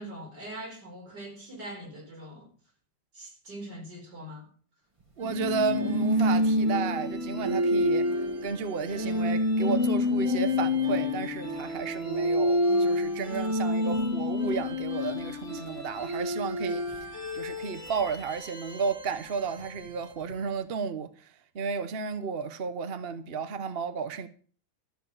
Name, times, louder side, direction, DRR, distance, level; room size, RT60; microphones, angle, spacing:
voice 1, 0.0-2.5 3.1-4.5, right 1 dB, 70° right, 5.1 m, -42 dB
sound 1, 5.2-20.3, left 1 dB, 20° right, 1.5 m, -28 dB
voice 2, 5.2-8.1 8.4-24.3, right 5 dB, 40° right, 0.9 m, -33 dB
13.5 x 6.8 x 8.5 m
omnidirectional pair, 1.9 m